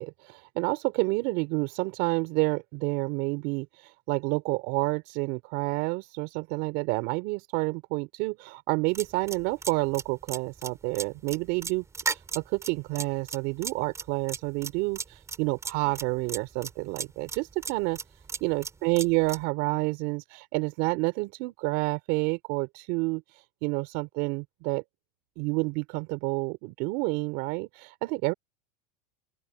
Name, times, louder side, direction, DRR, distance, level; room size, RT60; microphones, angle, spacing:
voice 1, 0.0-18.0 18.4-24.8 25.4-28.3, right 26 dB, 50° right, 4.5 m, -29 dB
sound 1, 9.0-19.4, right 5 dB, 15° right, 4.0 m, -35 dB
open air
supercardioid pair, 150°, 21 cm